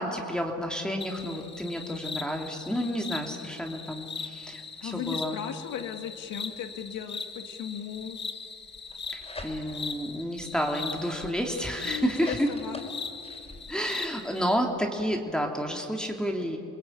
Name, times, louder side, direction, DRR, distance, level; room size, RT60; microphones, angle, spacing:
voice 1, 0.0-5.4 9.1-12.5 13.7-16.6, equal, 5° left, 1 dB, 2.7 m, -30 dB
sound 1, 1.0-14.6, left 5 dB, 35° left, 1.9 m, -40 dB
voice 2, 4.8-8.2 11.8-12.9, left 9 dB, 85° left, 6 dB, 2.1 m, -37 dB
sound 2, 8.7-9.9 10.4-13.6, left 2 dB, 20° left, 5.1 m, -44 dB
28.5 x 20.5 x 9.0 m, 2.6 s
cardioid pair, 90°, 30 cm